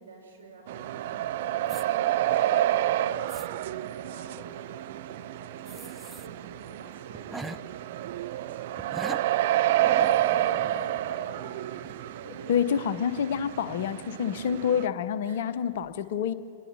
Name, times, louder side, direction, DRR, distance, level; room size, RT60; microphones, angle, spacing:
voice 1, 0.0-12.6 15.2-15.6, right 2 dB, 75° right, -1 dB, 6.0 m, -48 dB
sound 1, 0.7-14.9, right 13 dB, 50° right, 0.6 m, -29 dB
sound 2, 1.7-1.8 2.6-2.7 3.1-3.5 5.7-6.3 6.6-6.7 7.1-7.6 8.8-9.2 9.8-11.5 11.8-12.0, right 3 dB, 10° right, 0.7 m, -41 dB
voice 2, 12.5-16.3, left 8 dB, 55° left, 13 dB, 0.9 m, -27 dB
26.0 x 21.0 x 5.7 m, 2.3 s
figure-of-eight pair, 100°, 0 cm